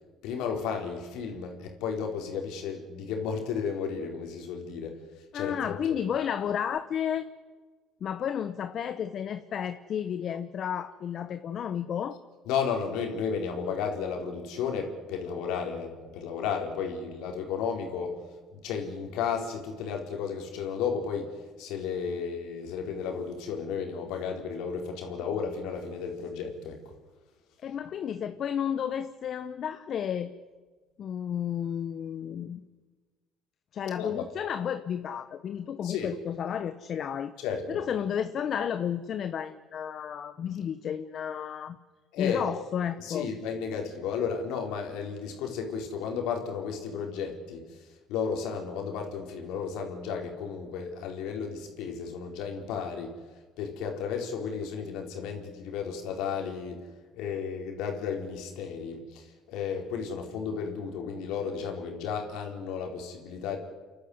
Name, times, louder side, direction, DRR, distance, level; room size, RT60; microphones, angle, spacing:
voice 1, 0.2-5.0 5.3-6.0 12.5-18.2 18.5-21.3 21.6-26.8 34.0-34.2 35.8-36.2 37.4-37.8 42.1-42.5 43.0-47.6 48.1-53.1 53.6-56.9 57.1-63.6, left 6 dB, 75° left, 3 dB, 4.3 m, -33 dB
voice 2, 5.3-7.3 8.0-12.2 27.6-30.3 31.0-32.6 33.7-37.3 37.7-41.8 42.2-43.3, left 8 dB, 55° left, 10 dB, 1.1 m, -32 dB
30.0 x 11.5 x 9.7 m, 1.4 s
supercardioid pair, 70°, 0 cm